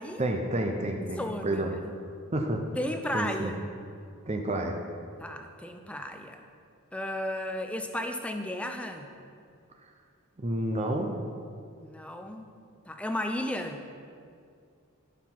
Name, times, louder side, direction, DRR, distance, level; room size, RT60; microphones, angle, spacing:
voice 1, 0.2-1.7 2.3-2.6 3.1-3.5 4.3-4.8 10.4-11.1, right 1 dB, 30° right, 3 dB, 0.8 m, -29 dB
voice 2, 1.2-1.9 2.8-3.7 5.2-6.4 6.9-9.1 11.8-12.5 12.9-13.8, left 1 dB, 5° left, 5 dB, 0.6 m, -34 dB
16.0 x 5.8 x 4.7 m, 2.3 s
head